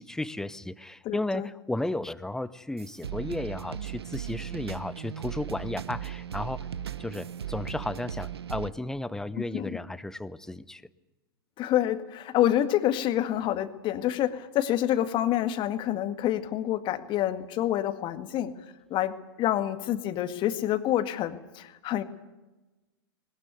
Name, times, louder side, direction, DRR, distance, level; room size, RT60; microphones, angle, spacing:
voice 1, 0.0-6.7 7.0-10.8, left 1 dB, 5° left, 16 dB, 0.9 m, -34 dB
voice 2, 1.1-1.5 9.4-9.8 11.6-18.5 18.9-22.0, left 12 dB, 40° left, 10 dB, 2.0 m, -27 dB
sound 1, 2.8-8.7, right 10 dB, 80° right, 0.9 m, -37 dB
20.0 x 20.0 x 9.3 m, 1.1 s
hypercardioid pair, 105°, 13 cm